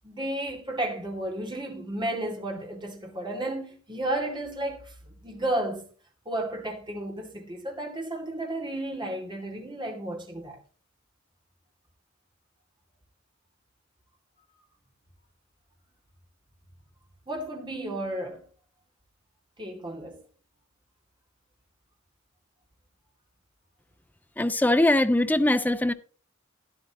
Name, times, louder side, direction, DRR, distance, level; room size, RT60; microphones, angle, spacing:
voice 1, 0.0-5.9 6.3-10.6 17.3-18.4 19.6-20.2, right 1 dB, 25° right, 2.5 m, -33 dB
voice 2, 24.4-25.9, left 1 dB, 10° left, 0.5 m, -22 dB
11.5 x 11.0 x 2.9 m
head